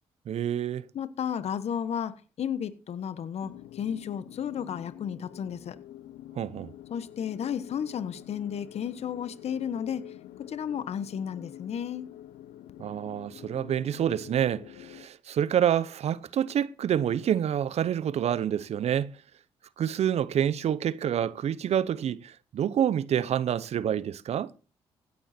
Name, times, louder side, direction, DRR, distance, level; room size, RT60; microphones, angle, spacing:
voice 1, 0.3-0.8 6.4-6.7 12.8-19.2 19.8-24.5, right 9 dB, 65° right, 0.8 m, -27 dB
voice 2, 0.9-5.8 6.9-12.1, left 8 dB, 65° left, 1.3 m, -33 dB
sound 1, 3.4-15.1, left 12 dB, 85° left, 0.8 m, -47 dB
16.0 x 11.0 x 4.4 m
cardioid pair, 70°, 12 cm